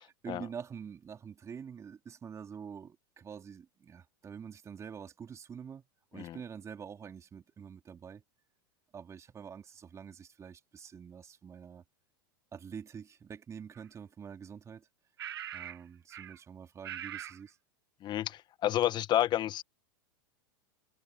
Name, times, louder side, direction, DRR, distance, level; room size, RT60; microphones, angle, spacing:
voice 1, 0.2-5.8 6.1-8.2 8.9-11.8 12.5-14.9 15.5-17.6, right 7 dB, 25° right, 3.1 m, -46 dB
sound 1, 13.8-13.9 15.2-15.8 16.1-16.4 16.8-17.4, right 10 dB, 80° right, 1.1 m, -42 dB
voice 2, 18.0-19.6, left 12 dB, 35° left, 1.5 m, -30 dB
hypercardioid pair, 95°, 12 cm